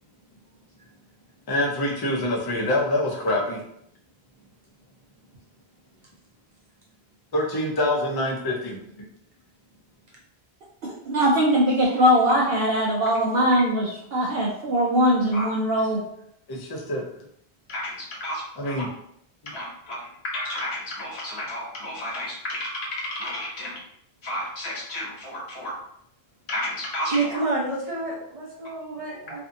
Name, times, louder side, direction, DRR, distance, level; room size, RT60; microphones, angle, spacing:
voice 1, 1.5-3.6 7.3-8.8 16.5-17.0 18.6-18.9, left 1 dB, 30° left, -2 dB, 0.4 m, -25 dB
voice 2, 10.8-16.0, equal, 70° right, -4 dB, 0.8 m, -21 dB
voice 3, 17.7-18.8 19.5-23.8 24.2-25.7 26.5-27.4, left 1 dB, 85° left, -3 dB, 1.1 m, -32 dB
voice 4, 27.1-29.4, right 3 dB, 40° right, -4 dB, 0.6 m, -28 dB
2.6 x 2.5 x 2.5 m, 0.73 s
omnidirectional pair, 1.1 m